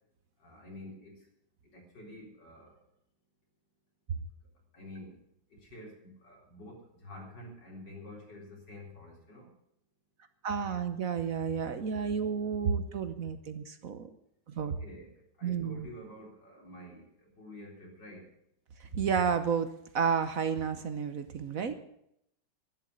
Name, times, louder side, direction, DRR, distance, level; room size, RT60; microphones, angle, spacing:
voice 1, 0.4-1.3 1.7-2.8 4.7-5.2 5.5-9.5 14.6-18.3 21.5-21.8, left 1 dB, 75° left, 0 dB, 4.7 m, -49 dB
voice 2, 10.4-14.1 14.5-14.7 15.4-15.9 18.8-21.7, right 6 dB, 55° right, 10 dB, 1.3 m, -31 dB
11.5 x 11.0 x 8.1 m, 0.76 s
omnidirectional pair, 1.9 m